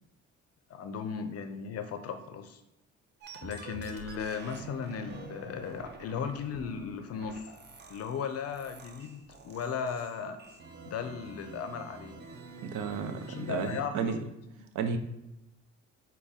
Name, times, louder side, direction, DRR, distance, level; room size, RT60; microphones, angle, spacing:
voice 1, 0.7-2.6 3.4-7.6 7.9-10.4 10.9-12.2 13.3-14.3, left 6 dB, 55° left, 8 dB, 0.5 m, -36 dB
sound 1, 3.2-13.9, right 4 dB, 35° right, 0.6 m, -48 dB
voice 2, 12.6-14.2 14.7-15.0, right 6 dB, 90° right, 7 dB, 0.5 m, -33 dB
6.2 x 2.2 x 3.5 m, 0.89 s
cardioid pair, 90°, 30 cm